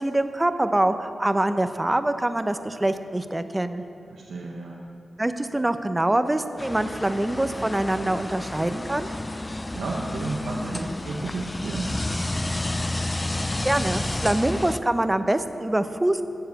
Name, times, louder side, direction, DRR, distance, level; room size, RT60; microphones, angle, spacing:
voice 1, 0.0-3.8 5.2-9.1 13.6-16.2, right 1 dB, 20° right, 10 dB, 0.6 m, -24 dB
voice 2, 4.1-4.8 9.7-12.0, right 3 dB, 85° right, -2 dB, 0.9 m, -32 dB
sound 1, 6.6-14.8, left 2 dB, 20° left, 0.4 m, -30 dB
14.0 x 4.8 x 7.9 m, 2.8 s
cardioid pair, 55°, 0 cm